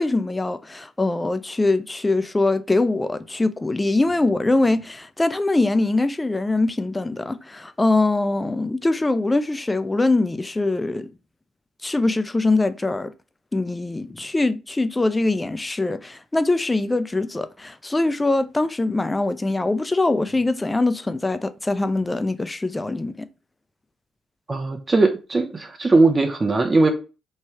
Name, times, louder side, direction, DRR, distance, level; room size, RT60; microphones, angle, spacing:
voice 1, 0.0-11.1 11.8-13.1 13.5-23.3, left 2 dB, 20° left, 0.4 m, -22 dB
voice 2, 24.5-26.9, right 3 dB, 30° right, 0.5 m, -19 dB
3.1 x 2.3 x 2.9 m
hypercardioid pair, 50°, 0 cm